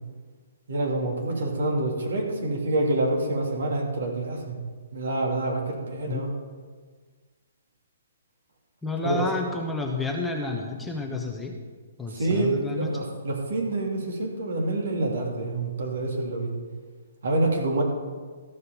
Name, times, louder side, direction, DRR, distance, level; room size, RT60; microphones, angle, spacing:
voice 1, 0.7-4.6 4.9-6.3 9.0-9.2 12.1-16.5 17.2-17.8, right 2 dB, 65° right, 0 dB, 2.6 m, -27 dB
voice 2, 8.8-11.5 12.0-12.9, left 3 dB, 5° left, 0 dB, 1.1 m, -30 dB
14.0 x 5.5 x 6.9 m, 1.5 s
figure-of-eight pair, 130°, 0 cm